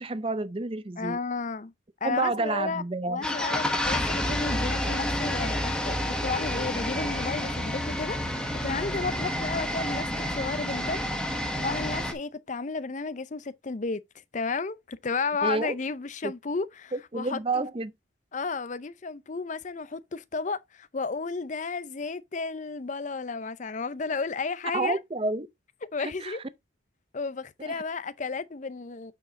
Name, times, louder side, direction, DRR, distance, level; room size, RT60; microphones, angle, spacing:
voice 1, 0.0-1.2 2.0-3.2 15.4-15.8 16.2-16.3 16.9-17.9 24.7-25.5 26.0-26.4 27.6-27.7, right 3 dB, 25° right, 0.5 m, -29 dB
voice 2, 1.0-1.7 2.0-11.3 11.6-17.6 18.3-25.0 25.9-26.4 27.1-29.1, left 4 dB, 35° left, 0.5 m, -33 dB
sound 1, 3.2-12.1, left 1 dB, 5° left, 1.1 m, -29 dB
8.8 x 4.8 x 3.7 m
head